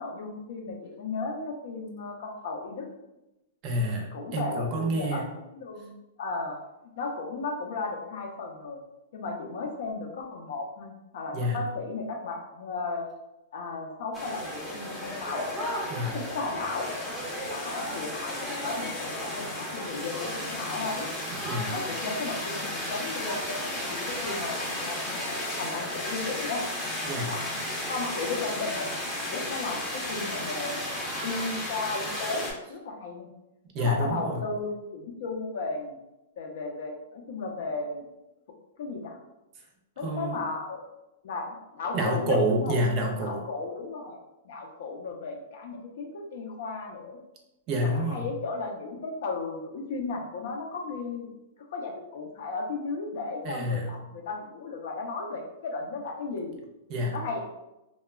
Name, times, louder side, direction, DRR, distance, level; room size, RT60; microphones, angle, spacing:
voice 1, 0.0-2.9 4.1-5.2 5.5-5.9 6.2-6.6 7.0-8.8 9.1-13.1 13.5-15.5 16.0-16.9 17.5-21.1 21.7-25.2 25.6-26.6 27.2-27.6 27.9-28.9 29.1-30.9 31.2-33.3 33.8-36.0 36.4-38.1 38.8-39.2 40.0-40.8 41.2-42.7 43.2-44.2 44.4-47.2 47.8-51.3 51.7-56.6 57.1-57.5, left 3 dB, 65° left, 2 dB, 0.5 m, -35 dB
voice 2, 3.6-5.2 11.3-11.6 15.9-16.2 21.3-21.7 27.0-27.4 33.7-34.4 40.0-40.4 41.9-43.4 47.7-48.3 53.4-53.9 56.9-57.2, equal, 35° right, 1 dB, 0.5 m, -28 dB
sound 1, 14.1-32.5, left 1 dB, 15° left, 0.6 m, -34 dB
2.9 x 2.2 x 2.3 m, 0.95 s
hypercardioid pair, 140°, 0 cm